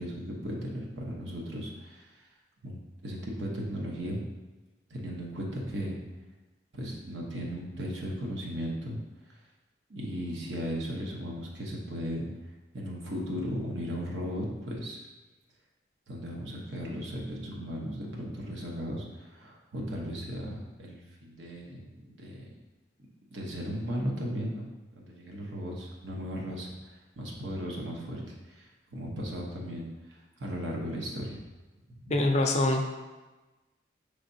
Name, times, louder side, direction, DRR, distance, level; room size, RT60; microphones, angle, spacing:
voice 1, 0.0-2.1 2.6-4.2 4.9-6.0 6.7-9.0 9.9-12.3 12.7-15.0 16.1-21.8 22.2-22.5 23.3-28.7 28.9-31.4 31.9-32.1, equal, 85° right, -2 dB, 0.9 m, -36 dB
voice 2, 32.1-32.8, left 2 dB, 35° left, 2 dB, 0.5 m, -24 dB
5.8 x 3.3 x 2.7 m, 1.2 s
head